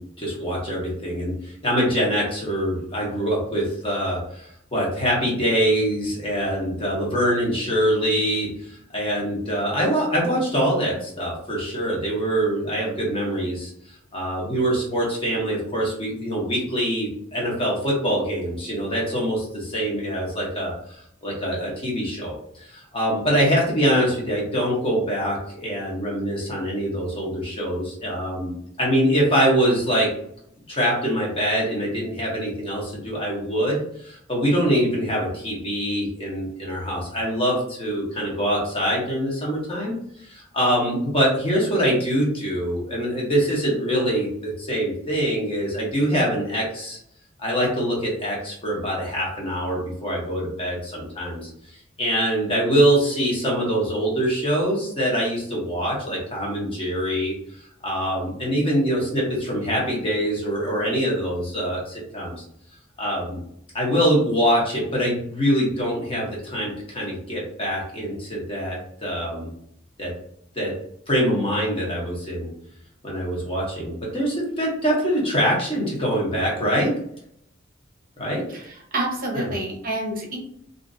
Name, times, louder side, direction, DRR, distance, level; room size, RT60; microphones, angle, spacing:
voice 1, 0.0-20.7 21.2-30.1 30.7-47.0 47.4-51.5 52.0-57.3 57.8-62.3 63.0-63.4 63.7-69.5 70.0-70.1 70.5-70.7 71.1-72.5 73.0-76.9 78.2-78.4 79.3-79.5, equal, 30° left, -3 dB, 0.9 m, -24 dB
voice 2, 78.5-80.4, right 2 dB, 45° right, 0 dB, 0.7 m, -28 dB
2.8 x 2.6 x 2.5 m, 0.71 s
head